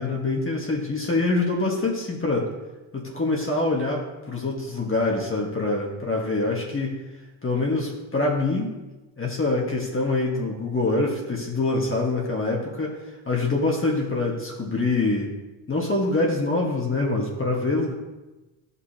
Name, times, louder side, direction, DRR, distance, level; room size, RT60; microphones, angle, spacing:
voice 1, 0.0-2.5 2.9-7.0 7.4-8.7 9.2-13.0 13.2-15.3 15.7-17.9, left 2 dB, 25° left, -2 dB, 1.6 m, -25 dB
11.0 x 5.6 x 2.9 m, 1.1 s
supercardioid pair, 75°, 49 cm